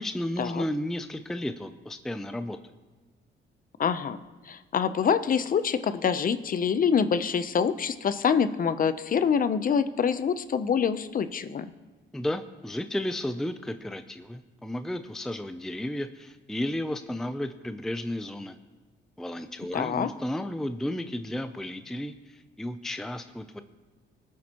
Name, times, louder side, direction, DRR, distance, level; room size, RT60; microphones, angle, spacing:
voice 1, 0.0-2.6 12.1-18.6 19.2-23.6, left 1 dB, ahead, 9 dB, 0.5 m, -33 dB
voice 2, 3.8-4.2 4.5-11.7 19.7-20.1, left 7 dB, 45° left, 12 dB, 0.7 m, -25 dB
19.0 x 9.4 x 3.0 m, 1.3 s
cardioid pair, 90°, 20 cm